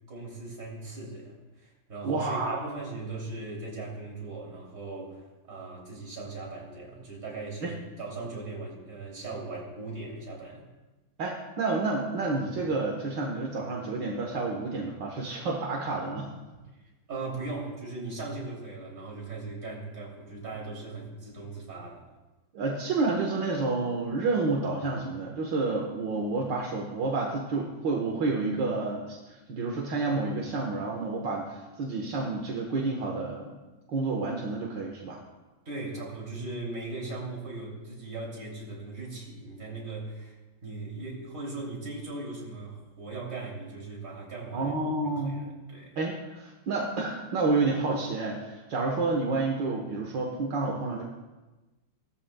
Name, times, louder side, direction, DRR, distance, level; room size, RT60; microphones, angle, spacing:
voice 1, 0.1-10.7 17.1-22.1 35.7-44.7 45.0-46.0, right 3 dB, 45° right, -3 dB, 3.5 m, -39 dB
voice 2, 2.0-2.6 7.6-7.7 11.2-16.3 22.5-33.6 33.9-35.2 44.5-45.4 46.0-51.0, right 3 dB, 70° right, -1 dB, 2.0 m, -29 dB
19.0 x 13.5 x 2.3 m, 1.1 s
omnidirectional pair, 2.1 m